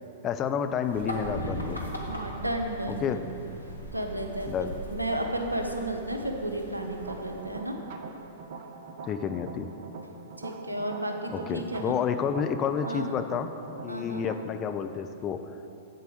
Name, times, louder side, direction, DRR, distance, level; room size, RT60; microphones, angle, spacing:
voice 1, 0.2-1.8 2.9-3.2 4.5-4.8 9.1-9.7 11.3-13.5 13.8-15.4, left 7 dB, 25° left, 8 dB, 0.4 m, -30 dB
sound 1, 0.8-7.4, equal, 85° left, 1.2 m, -38 dB
voice 2, 2.1-3.3 3.9-7.8 10.4-12.0 12.8-13.1 13.9-14.2, right 1 dB, 85° right, 3 dB, 0.8 m, -33 dB
sound 2, 7.0-14.4, right 4 dB, 50° right, 0.7 m, -43 dB
8.1 x 7.7 x 5.1 m, 2.8 s
figure-of-eight pair, 100°, 0 cm